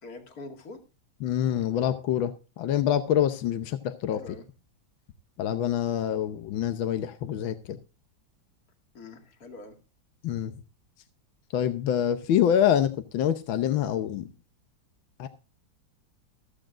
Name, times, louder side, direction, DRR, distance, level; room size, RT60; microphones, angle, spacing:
voice 1, 0.0-0.8 4.1-4.5 8.9-9.8, left 2 dB, 50° left, 4 dB, 2.5 m, -44 dB
voice 2, 1.2-4.3 5.4-7.8 10.2-10.5 11.5-14.3 15.2-15.3, left 10 dB, 85° left, 9 dB, 1.6 m, -26 dB
15.0 x 14.0 x 2.5 m, 0.31 s
omnidirectional pair, 2.1 m